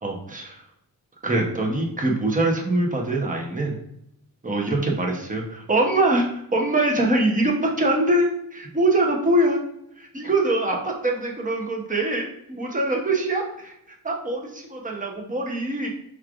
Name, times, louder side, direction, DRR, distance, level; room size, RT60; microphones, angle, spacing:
voice 1, 0.0-0.6 1.2-3.8 4.4-9.6 10.0-13.7 14.0-15.9, right 2 dB, 20° right, 1 dB, 0.9 m, -23 dB
4.8 x 3.2 x 2.4 m, 0.75 s
wide cardioid pair, 120°, 36 cm